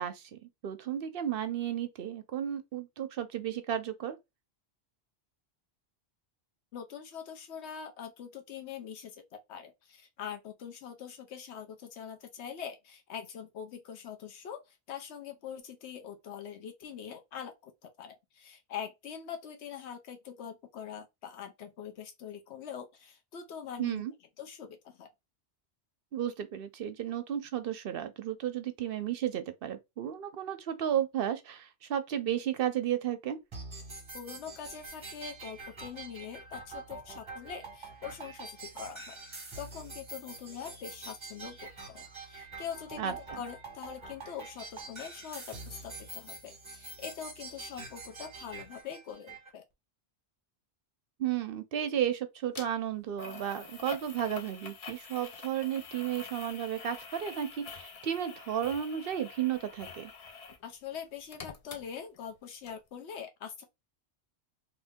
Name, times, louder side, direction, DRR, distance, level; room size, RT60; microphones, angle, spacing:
voice 1, 0.0-4.2 23.8-24.1 26.1-33.4 43.0-43.4 51.2-60.1, right 10 dB, 65° right, 0.7 m, -33 dB
voice 2, 6.7-9.2 9.5-24.0 24.4-25.1 34.1-39.2 39.6-49.6 60.6-63.6, left 8 dB, 85° left, 1.0 m, -43 dB
sound 1, 33.5-49.5, right 3 dB, 30° right, 1.0 m, -46 dB
sound 2, 52.5-52.7 53.2-60.6 60.9-62.4 62.7-62.8, left 5 dB, 45° left, 0.5 m, -46 dB
2.9 x 2.5 x 3.5 m
omnidirectional pair, 1.1 m